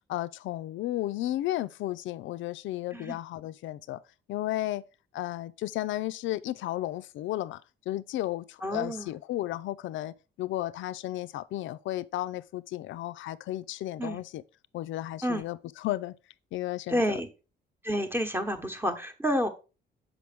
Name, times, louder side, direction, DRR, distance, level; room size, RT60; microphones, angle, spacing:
voice 1, 0.1-4.0 4.3-4.8 5.1-14.4 14.7-16.2 16.5-17.2, left 15 dB, 75° left, 0.4 m, -33 dB
voice 2, 8.6-9.1 14.0-14.2 15.2-15.4 16.9-17.3 17.8-19.5, equal, 10° right, 1.0 m, -29 dB
6.2 x 5.1 x 3.4 m
cardioid pair, 90°, 20 cm